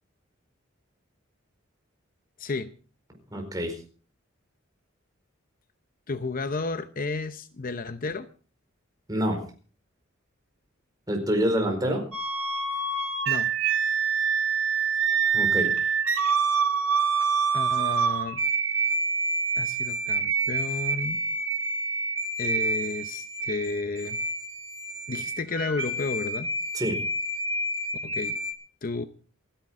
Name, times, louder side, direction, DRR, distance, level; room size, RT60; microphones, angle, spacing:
voice 1, 2.4-2.7 6.1-8.3 13.3-13.5 17.5-18.4 19.6-21.2 22.4-24.2 25.1-26.5 28.0-28.3 28.8-29.0, left 3 dB, 45° left, 0.8 m, -32 dB
voice 2, 3.3-3.7 9.1-9.4 11.1-12.0 15.3-15.7 26.7-27.0, equal, 20° right, 4.5 m, -26 dB
sound 1, 12.1-28.5, right 4 dB, 80° right, 2.4 m, -27 dB
28.0 x 10.5 x 3.7 m
head